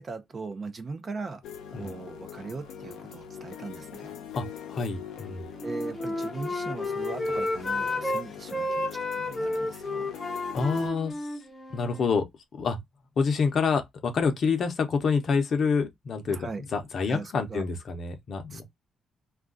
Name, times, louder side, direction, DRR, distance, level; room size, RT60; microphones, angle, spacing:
voice 1, 0.0-1.4 1.8-4.2 5.6-10.1 16.3-16.6 17.1-17.6 18.5-18.6, right 4 dB, 35° right, 0.5 m, -39 dB
sound 1, 1.4-10.9, left 8 dB, 85° left, 0.6 m, -42 dB
voice 2, 4.3-5.5 10.5-11.3 11.7-12.2 12.6-12.8 13.2-18.6, left 5 dB, 50° left, 0.7 m, -27 dB
Wind instrument woodwind instrument, 5.5-8.2 8.5-12.1, left 2 dB, 15° left, 0.7 m, -31 dB
2.4 x 2.2 x 3.7 m
cardioid pair, 130°, 0 cm